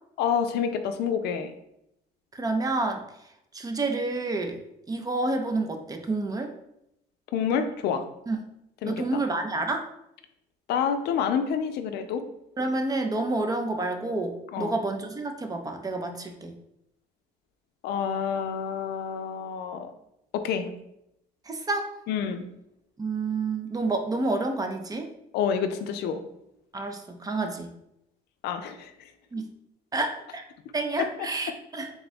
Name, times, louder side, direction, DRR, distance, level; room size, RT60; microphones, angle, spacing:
voice 1, 0.2-1.5 7.3-8.0 8.8-8.9 10.7-12.2 14.5-14.7 17.8-19.9 20.3-20.7 22.1-22.4 25.3-26.2 28.4-29.1 31.0-31.1, left 7 dB, 75° left, 8 dB, 0.4 m, -28 dB
voice 2, 2.3-3.0 3.5-4.6 4.9-6.5 8.3-8.4 8.8-9.9 12.6-16.6 21.5-21.9 23.0-25.1 26.7-27.7 29.3-29.5 29.9-30.4 30.7-31.9, right 2 dB, 20° right, 5 dB, 0.5 m, -29 dB
3.6 x 2.3 x 4.1 m, 0.81 s
cardioid pair, 110°, 17 cm